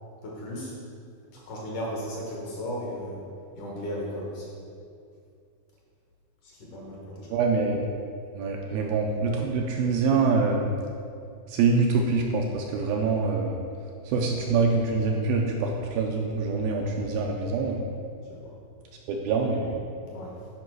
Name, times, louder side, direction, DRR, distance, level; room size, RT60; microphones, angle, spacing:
voice 1, 0.2-0.7 1.5-3.2 3.6-4.5 6.4-7.4 8.6-8.9 16.4-16.6 18.3-18.5 20.1-20.4, equal, 60° left, -4 dB, 2.5 m, -36 dB
voice 2, 7.3-7.8 8.4-10.7 11.5-13.6 14.1-17.8 19.1-19.7, right 4 dB, 80° right, 0 dB, 2.3 m, -25 dB
10.5 x 5.3 x 4.7 m, 2.4 s
omnidirectional pair, 4.6 m